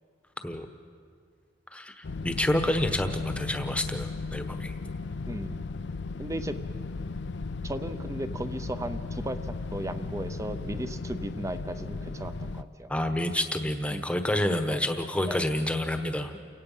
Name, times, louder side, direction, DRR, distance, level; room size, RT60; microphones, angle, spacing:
voice 1, 1.7-4.8 12.9-16.3, left 1 dB, 5° left, 7 dB, 1.1 m, -29 dB
sound 1, 2.0-12.6, left 3 dB, 65° left, 0.5 m, -36 dB
voice 2, 5.3-5.6 6.2-6.6 7.6-12.9 13.9-14.0 14.7-14.8 15.3-15.4, right 1 dB, 15° right, 10 dB, 0.7 m, -36 dB
29.5 x 17.5 x 5.6 m, 2.1 s
head